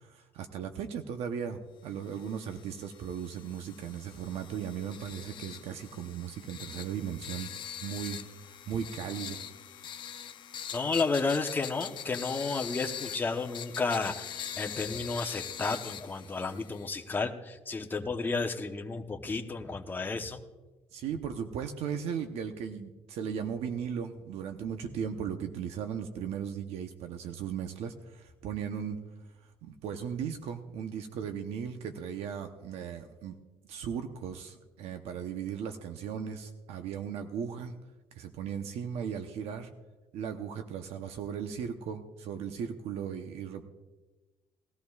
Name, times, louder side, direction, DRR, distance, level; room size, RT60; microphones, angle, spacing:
voice 1, 0.0-7.5 7.8-8.2 8.4-9.4 20.9-29.0 29.6-33.4 33.7-37.8 38.2-39.7 40.1-43.6, right 7 dB, 85° right, 6 dB, 0.9 m, -37 dB
sound 1, 2.1-17.0, left 9 dB, 50° left, 0.6 m, -43 dB
voice 2, 10.7-20.4, left 4 dB, 20° left, 5 dB, 0.9 m, -32 dB
19.5 x 14.0 x 2.4 m, 1.2 s
cardioid pair, 140°, 10 cm